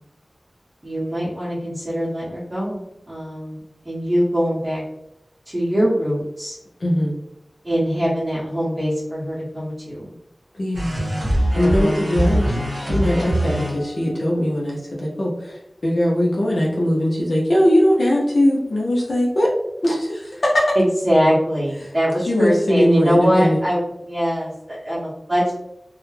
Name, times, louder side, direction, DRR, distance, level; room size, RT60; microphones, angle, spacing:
voice 1, 0.8-3.6 3.8-4.8 5.5-6.6 7.6-10.0 11.5-12.4 20.7-25.5, equal, 30° right, -9 dB, 0.8 m, -22 dB
voice 2, 6.8-7.2 10.6-11.0 11.3-19.5 19.8-20.8 21.8-21.9 22.2-23.6, equal, 75° left, -4 dB, 0.6 m, -20 dB
sound 1, 10.7-14.1, right 1 dB, 50° right, 1.1 m, -22 dB
2.3 x 2.1 x 3.1 m, 0.85 s
wide cardioid pair, 75°, 0 cm